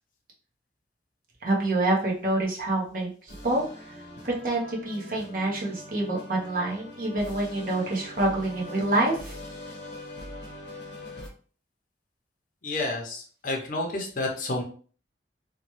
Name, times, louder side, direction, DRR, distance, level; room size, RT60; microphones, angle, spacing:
voice 1, 1.4-3.1 3.4-3.6 4.2-9.3, right 2 dB, 50° right, -3 dB, 0.8 m, -26 dB
sound 1, 3.3-11.3, left 1 dB, 85° left, 0.8 m, -42 dB
voice 2, 12.6-14.6, left 2 dB, 45° left, 1 dB, 0.6 m, -30 dB
2.9 x 2.1 x 3.0 m, 0.42 s
head